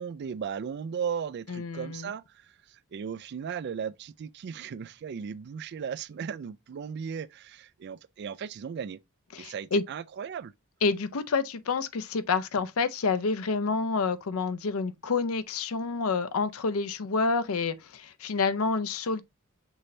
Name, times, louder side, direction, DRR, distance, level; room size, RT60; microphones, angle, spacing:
voice 1, 0.0-9.0 9.4-10.5, right 7 dB, 50° right, 0.3 m, -36 dB
voice 2, 1.5-2.1 9.3-9.8 10.8-19.2, left 4 dB, 85° left, 0.6 m, -28 dB
6.1 x 3.2 x 2.6 m
head